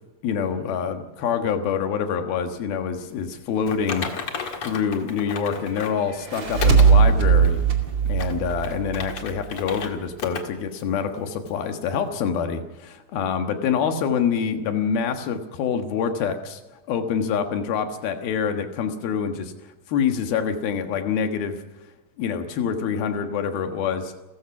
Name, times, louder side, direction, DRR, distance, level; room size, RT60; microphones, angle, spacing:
voice 1, 0.2-4.1 4.6-7.6 8.1-16.6 16.9-19.5 19.9-21.6 22.2-24.1, left 7 dB, 80° left, 6 dB, 3.4 m, -26 dB
Typing, 3.7-6.0 6.6-6.9 7.4-7.5 8.1-9.9 10.2-10.4 10.8-10.9 11.5-11.6, left 5 dB, 45° left, 2.3 m, -33 dB
sound 1, 6.1-9.4, right 6 dB, 35° right, 2.7 m, -19 dB
30.0 x 15.0 x 6.0 m, 1.1 s
omnidirectional pair, 4.2 m